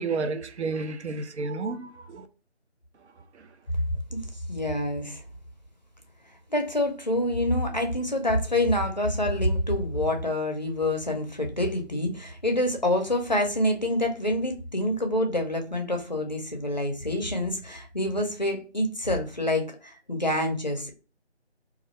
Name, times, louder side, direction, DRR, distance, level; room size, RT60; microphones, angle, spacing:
voice 1, 0.0-2.3 3.3-3.5, right 3 dB, 75° right, 0.5 m, -31 dB
voice 2, 4.5-5.2 6.5-20.9, left 1 dB, 40° left, 0.5 m, -27 dB
2.4 x 2.1 x 2.9 m
figure-of-eight pair, 170°, 34 cm